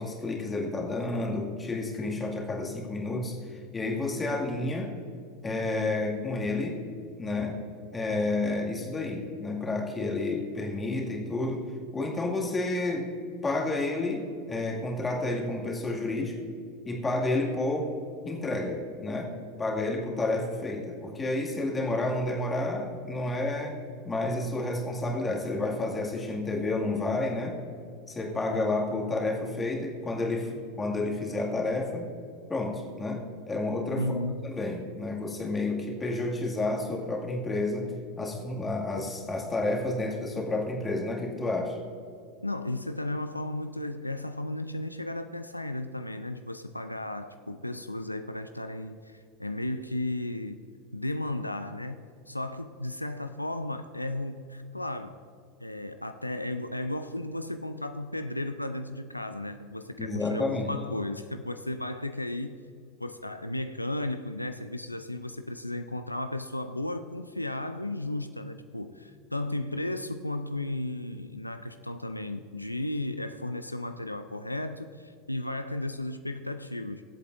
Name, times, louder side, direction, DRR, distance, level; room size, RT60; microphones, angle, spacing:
voice 1, 0.0-4.9 5.4-6.8 7.2-7.6 7.9-11.6 11.9-13.1 13.4-16.3 16.9-17.9 18.2-19.3 19.6-23.7 24.0-27.6 28.1-32.1 32.5-37.9 38.2-41.8 60.0-60.8, left 2 dB, 15° left, 0 dB, 2.1 m, -30 dB
voice 2, 34.0-34.5 42.4-50.6 50.9-55.2 55.6-62.6 63.0-77.0, left 1 dB, 90° left, 9 dB, 0.4 m, -34 dB
23.0 x 8.2 x 2.6 m, 2.4 s
figure-of-eight pair, 85°, 0 cm